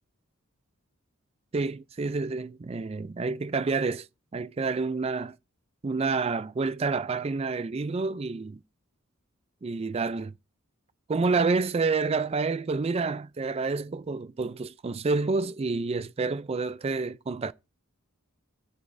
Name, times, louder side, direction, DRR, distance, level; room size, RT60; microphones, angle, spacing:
voice 1, 1.5-4.1 4.3-5.4 5.8-8.6 9.6-10.3 11.1-17.5, right 4 dB, 30° right, 0.3 m, -28 dB
15.5 x 6.3 x 2.6 m
head